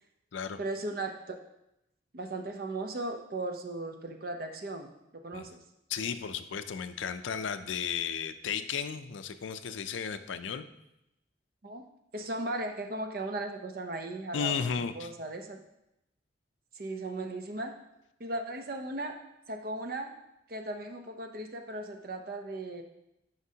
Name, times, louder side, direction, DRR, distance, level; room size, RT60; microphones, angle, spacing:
voice 1, 0.6-1.3 2.1-4.9 5.2-5.6 11.6-11.8 12.1-15.6 16.7-17.7 18.2-19.2 19.5-20.1 20.5-22.8, right 2 dB, 50° right, 4 dB, 0.7 m, -37 dB
voice 2, 5.9-10.7 14.3-15.1, left 7 dB, 90° left, 11 dB, 0.4 m, -34 dB
9.7 x 5.1 x 2.8 m, 0.84 s
head